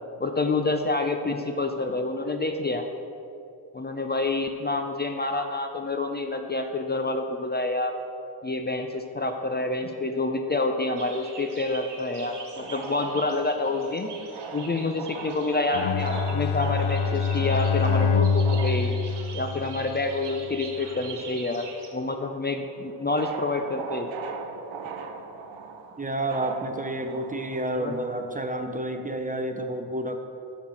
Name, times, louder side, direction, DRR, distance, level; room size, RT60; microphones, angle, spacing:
voice 1, 0.2-2.8 3.7-8.0 8.4-14.1 14.5-18.9 19.3-21.6 21.9-24.1 27.8-27.9, left 2 dB, 20° left, 5 dB, 0.6 m, -28 dB
sound 1, 11.0-21.9, right 4 dB, 60° right, 1.5 m, -43 dB
sound 2, 12.5-21.5 21.8-28.3, right 5 dB, 75° right, 0.8 m, -40 dB
Bowed string instrument, 15.7-20.1, left 5 dB, 65° left, 0.6 m, -25 dB
voice 2, 26.0-30.2, right 1 dB, 20° right, 5 dB, 0.7 m, -30 dB
6.5 x 5.8 x 5.8 m, 2.7 s
supercardioid pair, 50°, 46 cm